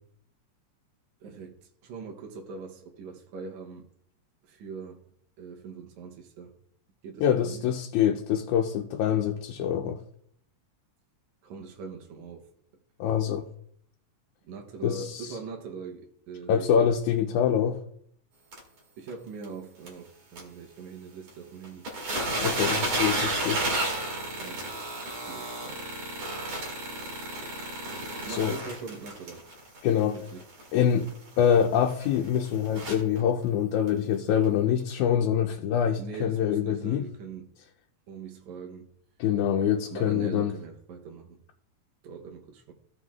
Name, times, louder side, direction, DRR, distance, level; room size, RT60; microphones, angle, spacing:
voice 1, 1.2-3.9 4.4-5.0 5.4-6.5 7.0-7.7 11.4-12.5 14.4-17.2 19.0-21.9 24.4-24.6 25.2-26.0 28.2-29.4 30.1-30.4 36.0-37.5 38.1-38.9 39.9-41.4 42.0-42.7, right 5 dB, 75° right, 2.3 m, -42 dB
voice 2, 7.2-10.0 13.0-13.5 14.8-15.3 16.5-17.8 22.4-23.6 28.3-28.5 29.8-30.2 30.7-31.1 31.4-37.0 39.2-40.5, left 9 dB, 85° left, 2.1 m, -25 dB
sound 1, 18.5-18.6 19.1-19.2 19.4-19.5 19.9-20.0 20.4-20.5 21.3-21.4 21.6-33.2 33.9-34.0 34.4-34.5, right 2 dB, 55° right, 2.9 m, -32 dB
16.0 x 5.7 x 2.4 m
omnidirectional pair, 3.3 m